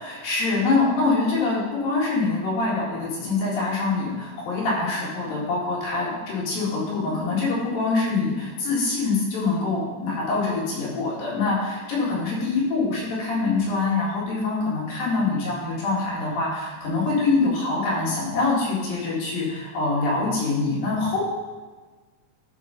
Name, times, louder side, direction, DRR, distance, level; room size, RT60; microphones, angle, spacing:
voice 1, 0.0-21.2, left 3 dB, 85° left, -6 dB, 3.8 m, -24 dB
11.0 x 3.8 x 5.2 m, 1.4 s
omnidirectional pair, 4.0 m